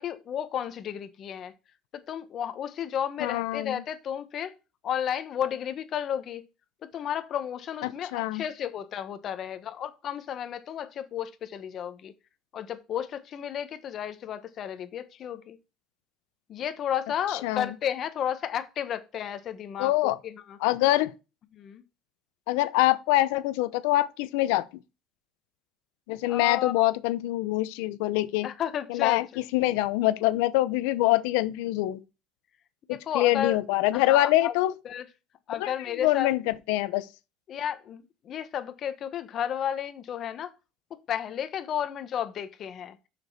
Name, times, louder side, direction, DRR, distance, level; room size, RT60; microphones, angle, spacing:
voice 1, 0.0-1.5 1.9-4.5 4.8-6.4 6.8-12.1 12.5-15.6 16.5-20.6 21.5-21.8 26.3-26.9 28.4-29.2 32.9-33.6 33.9-34.5 34.8-35.0 35.5-36.3 37.5-40.5 40.9-43.0, left 9 dB, 45° left, 1.1 m, -33 dB
voice 2, 3.2-3.8 7.8-8.4 17.3-17.7 19.8-20.2 20.6-21.1 22.5-24.7 26.1-28.5 28.9-32.0 32.9-34.7 35.6-37.1, left 16 dB, 90° left, 0.7 m, -25 dB
6.7 x 6.1 x 4.6 m
cardioid pair, 135°, 0 cm